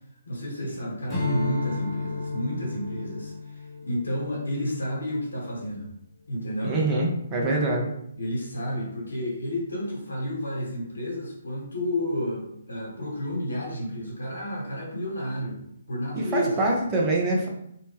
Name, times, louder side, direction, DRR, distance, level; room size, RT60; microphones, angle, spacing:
voice 1, 0.3-5.9 6.3-6.8 8.1-15.6 15.9-16.7, left 1 dB, 85° left, -3 dB, 1.2 m, -31 dB
Strum, 1.1-5.8, left 3 dB, 10° left, 1.0 m, -33 dB
voice 2, 6.6-7.9 16.2-17.5, right 2 dB, 25° right, -2 dB, 0.6 m, -24 dB
2.9 x 2.1 x 3.2 m, 0.75 s
figure-of-eight pair, 140°, 0 cm